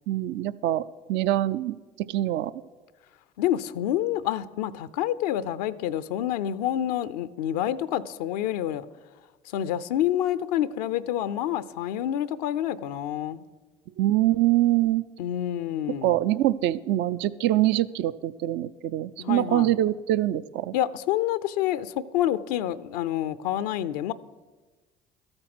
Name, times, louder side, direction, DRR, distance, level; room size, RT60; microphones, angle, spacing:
voice 1, 0.1-0.8 1.1-1.7 2.1-2.5 14.0-15.0 16.0-20.7, right 14 dB, 65° right, 0.5 m, -24 dB
voice 2, 3.4-8.9 9.5-13.5 15.2-16.2 19.2-19.7 20.7-24.1, left 11 dB, 85° left, 0.5 m, -28 dB
13.5 x 8.8 x 6.0 m
hypercardioid pair, 65°, 20 cm